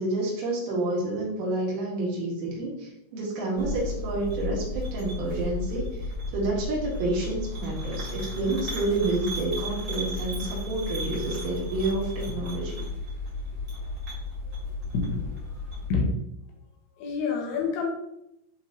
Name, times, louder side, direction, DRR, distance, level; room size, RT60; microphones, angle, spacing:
voice 1, 0.0-6.0 6.3-12.8, right 2 dB, 75° right, -4 dB, 4.5 m, -29 dB
sound 1, 3.6-15.9, left 2 dB, 40° right, 1.9 m, -34 dB
voice 2, 14.9-15.4 15.9-16.2 17.0-17.9, left 4 dB, 75° left, 1 dB, 2.6 m, -27 dB
11.0 x 4.1 x 3.0 m, 0.82 s
omnidirectional pair, 5.8 m